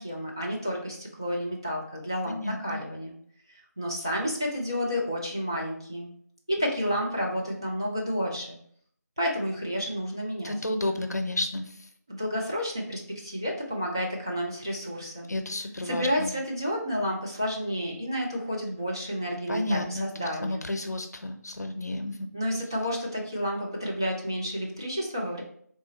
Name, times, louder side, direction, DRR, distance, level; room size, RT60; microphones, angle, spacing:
voice 1, 0.0-3.1 3.5-6.1 6.5-8.6 9.2-10.5 12.1-15.3 15.8-20.7 22.3-25.4, equal, 15° right, -4 dB, 0.3 m, -30 dB
voice 2, 2.2-2.8 10.4-11.7 15.3-16.3 19.5-22.3, left 1 dB, 65° left, 6 dB, 0.6 m, -31 dB
3.6 x 2.5 x 3.9 m, 0.62 s
figure-of-eight pair, 165°, 9 cm